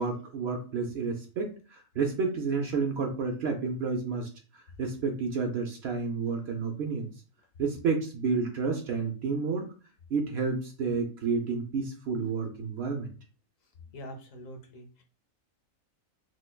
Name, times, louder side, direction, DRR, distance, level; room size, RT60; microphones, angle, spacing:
voice 1, 0.0-4.3 4.8-7.1 7.6-9.7 10.1-13.1, right 4 dB, 60° right, 3 dB, 0.7 m, -30 dB
voice 2, 13.9-15.0, equal, 75° left, 5 dB, 1.1 m, -44 dB
3.2 x 3.1 x 2.2 m, 0.36 s
omnidirectional pair, 1.4 m